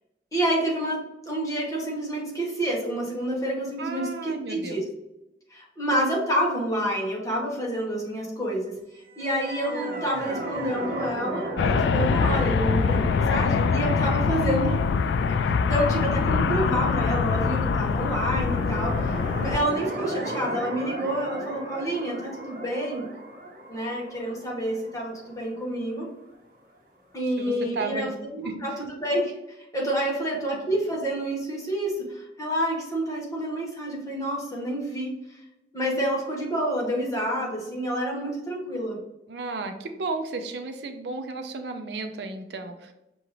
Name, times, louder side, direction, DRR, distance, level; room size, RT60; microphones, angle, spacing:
voice 1, 0.3-4.8 5.5-8.7 9.2-14.8 15.7-23.0 23.7-26.1 27.1-29.3 29.6-35.4 35.7-39.0, right 1 dB, 20° left, -2 dB, 1.1 m, -28 dB
voice 2, 3.8-4.8 14.4-14.8 27.4-28.1 28.4-28.6 39.3-42.9, right 3 dB, 70° right, 7 dB, 0.5 m, -33 dB
sound 1, 9.1-16.3 18.2-26.0, right 1 dB, 55° right, 1.1 m, -36 dB
sound 2, 11.6-19.6, left 5 dB, 85° left, 0.3 m, -24 dB
5.7 x 2.6 x 3.0 m, 0.91 s
head